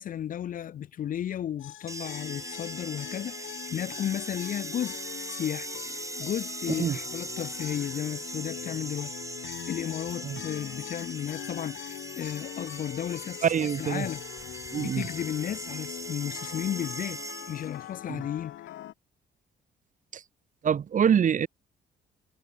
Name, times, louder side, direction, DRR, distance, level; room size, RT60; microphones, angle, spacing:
voice 1, 0.0-5.7 6.2-9.1 9.4-13.5 13.8-14.2 14.8-18.6, left 10 dB, 45° left, 0.4 m, -34 dB
sound 1, 1.6-18.9, left 13 dB, 75° left, 1.3 m, -42 dB
sound 2, 1.9-17.8, right 2 dB, 15° right, 2.1 m, -40 dB
voice 2, 13.4-14.1 14.7-15.0 18.1-18.2 20.1-20.2 20.6-21.5, right 8 dB, 40° right, 0.6 m, -25 dB
sound 3, 14.4-18.8, left 9 dB, 60° left, 2.2 m, -58 dB
cardioid pair, 90°, 20 cm